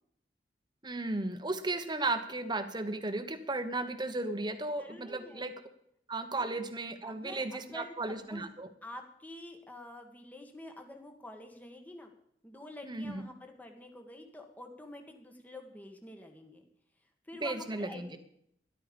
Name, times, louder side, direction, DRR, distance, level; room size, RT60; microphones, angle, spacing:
voice 1, 0.8-5.5 6.1-8.7 12.8-13.2 17.4-18.2, right 2 dB, 25° right, 9 dB, 1.2 m, -35 dB
voice 2, 4.8-5.5 6.3-6.7 7.1-8.5 8.8-12.1 12.4-16.6 17.2-18.2, left 1 dB, 10° left, 4 dB, 1.5 m, -48 dB
13.0 x 11.5 x 5.3 m, 0.71 s
head